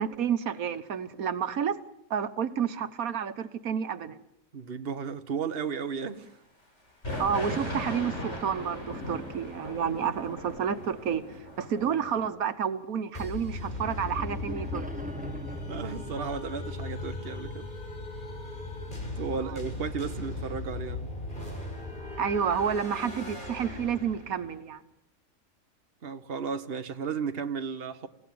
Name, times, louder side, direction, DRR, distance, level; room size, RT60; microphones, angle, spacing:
voice 1, 0.0-1.8 2.1-4.2 7.2-11.2 11.6-14.9 19.3-19.6 22.2-24.8, right 7 dB, 90° right, 1.6 m, -30 dB
voice 2, 4.5-6.3 15.7-17.7 19.2-21.1 26.0-28.1, right 6 dB, 45° right, 1.4 m, -34 dB
sound 1, 7.0-12.3, left 1 dB, 55° left, 6.4 m, -38 dB
sound 2, 13.1-24.5, left 2 dB, 35° left, 5.2 m, -38 dB
sound 3, 13.8-17.1, right 1 dB, 5° right, 1.1 m, -42 dB
29.0 x 16.5 x 9.4 m
omnidirectional pair, 1.4 m